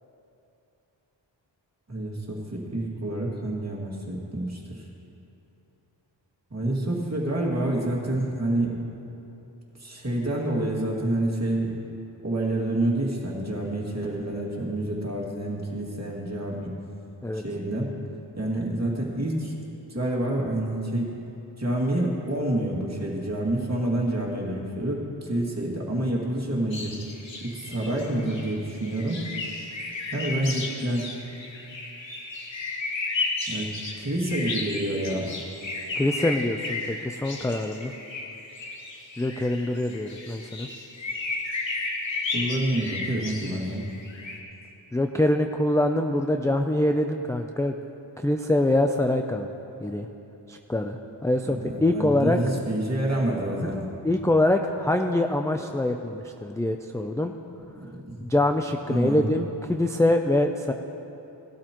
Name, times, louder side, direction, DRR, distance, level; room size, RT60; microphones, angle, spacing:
voice 1, 1.9-4.8 6.5-8.8 9.8-11.7 12.2-16.7 17.3-17.9 18.4-19.5 19.9-21.2 21.6-26.9 27.4-29.2 30.1-31.2 33.5-33.7 34.0-35.3 42.3-43.8 51.6-53.9 57.8-58.2 58.9-59.3, right 1 dB, 35° right, -3 dB, 2.3 m, -28 dB
sound 1, 26.7-44.4, left 3 dB, 75° left, 1.4 m, -34 dB
voice 2, 36.0-37.9 39.2-40.7 44.9-47.7 48.2-49.5 49.8-50.1 50.5-52.4 53.6-53.7 54.0-57.3 58.2-60.7, left 1 dB, 5° left, 4 dB, 0.4 m, -24 dB
18.5 x 12.5 x 3.0 m, 2.9 s
wide cardioid pair, 85°, 46 cm